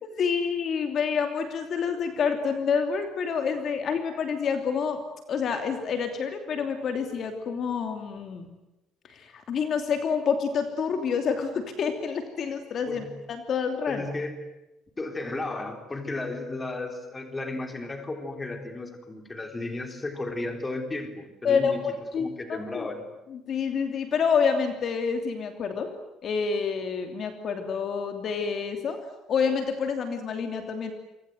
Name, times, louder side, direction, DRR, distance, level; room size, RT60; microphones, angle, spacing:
voice 1, 0.0-5.0 5.3-8.4 9.0-14.0 21.4-22.9 23.3-25.9 26.2-29.0 29.3-30.9, left 6 dB, 35° left, 6 dB, 2.8 m, -28 dB
voice 2, 13.9-14.4 15.0-21.8 22.2-23.0, left 2 dB, 15° left, 6 dB, 3.8 m, -34 dB
29.5 x 25.0 x 8.0 m, 1.0 s
cardioid pair, 175°, 0 cm